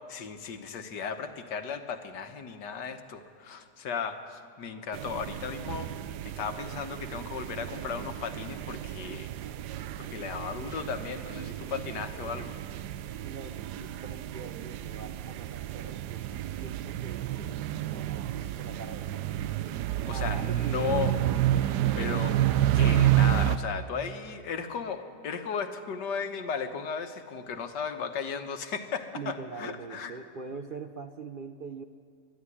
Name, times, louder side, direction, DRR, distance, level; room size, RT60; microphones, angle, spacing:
voice 1, 0.1-5.9 6.2-9.3 10.0-12.5 20.1-21.1 22.0-22.5 22.7-30.2, left 6 dB, 90° left, 8 dB, 1.8 m, -35 dB
sound 1, 4.9-23.6, right 12 dB, 80° right, 1.2 m, -30 dB
voice 2, 13.2-16.3 16.6-17.5 17.8-19.4 20.1-21.7 29.1-31.8, right 5 dB, 60° right, 7 dB, 0.5 m, -43 dB
23.0 x 11.5 x 9.9 m, 2.2 s
omnidirectional pair, 1.8 m